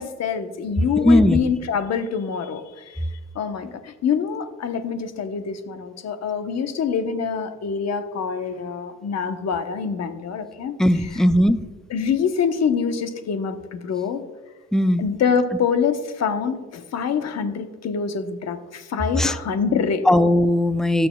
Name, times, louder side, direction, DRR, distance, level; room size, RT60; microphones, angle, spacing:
voice 1, 0.0-3.1 3.3-11.2 11.9-14.3 15.0-20.1, left 6 dB, 60° left, 8 dB, 1.0 m, -25 dB
voice 2, 1.0-1.4 10.8-11.6 14.7-15.0 19.2-19.3 20.1-21.1, left 1 dB, ahead, 12 dB, 0.4 m, -17 dB
18.0 x 6.8 x 2.3 m, 1.2 s
cardioid pair, 90°, 30 cm